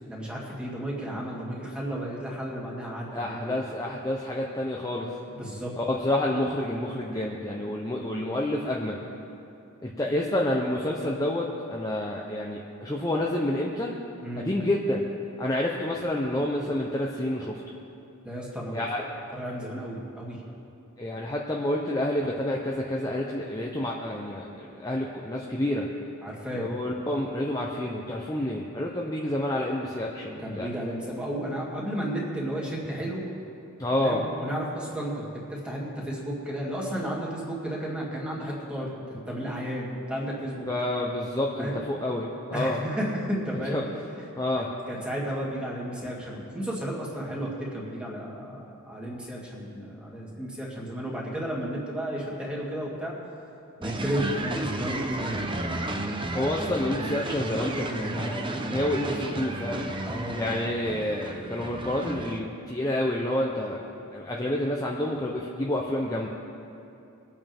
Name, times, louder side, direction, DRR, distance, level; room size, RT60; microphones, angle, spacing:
voice 1, 0.1-3.6 5.3-5.7 14.2-14.5 18.2-18.8 19.3-20.4 26.2-26.7 30.4-33.2 34.0-40.7 41.6-41.8 42.5-43.8 44.1-44.3 44.6-53.1 53.8-55.5 60.0-60.4, equal, 5° right, -5 dB, 2.4 m, -33 dB
voice 2, 3.1-5.1 5.8-9.0 9.8-13.9 14.4-15.1 15.4-17.6 18.7-19.0 21.0-25.9 26.6-30.7 33.8-34.2 40.7-42.8 43.7-43.8 44.4-44.7 56.3-59.8 60.4-63.8 64.1-66.3, left 1 dB, 15° left, -2 dB, 0.8 m, -29 dB
sound 1, 53.8-62.4, right 1 dB, 25° right, 0.8 m, -32 dB
23.0 x 8.8 x 3.6 m, 2.7 s
head